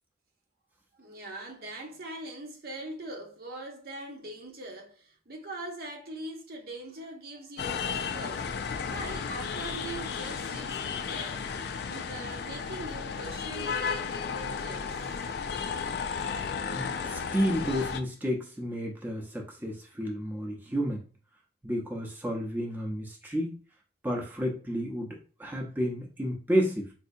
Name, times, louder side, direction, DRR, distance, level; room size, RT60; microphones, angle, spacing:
voice 1, 0.9-11.5 11.9-15.0, right 2 dB, 55° right, 0.8 m, -42 dB
sound 1, 7.6-18.0, left 6 dB, 60° left, 0.4 m, -34 dB
voice 2, 16.7-21.0 21.6-23.6 24.0-26.9, equal, 10° right, 0.7 m, -31 dB
4.2 x 2.7 x 2.6 m
head